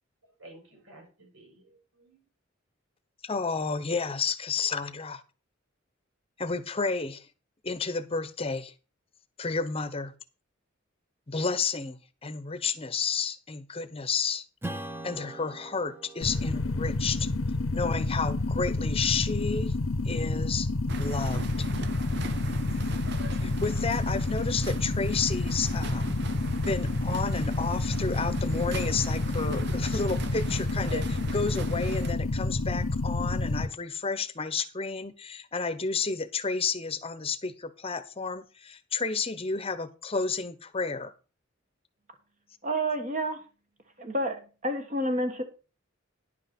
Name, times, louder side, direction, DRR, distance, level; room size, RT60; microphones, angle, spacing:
voice 1, 0.2-2.2, right 1 dB, 85° right, 5.7 m, -53 dB
voice 2, 3.2-5.2 6.4-7.3 7.6-8.7 9.4-10.1 11.3-14.4 15.0-17.3 17.7-19.8 20.0-20.7 21.0-21.7 23.4-26.1 26.6-41.1, left 4 dB, 30° left, 0.9 m, -31 dB
Strum, 14.6-19.5, right 1 dB, 10° right, 0.8 m, -44 dB
sound 1, 16.2-33.7, left 2 dB, 75° left, 0.8 m, -29 dB
sound 2, 20.9-32.1, right 4 dB, 60° right, 0.9 m, -41 dB
voice 3, 42.6-43.4 44.0-45.4, right 1 dB, 40° right, 1.4 m, -29 dB
10.5 x 5.8 x 5.9 m
head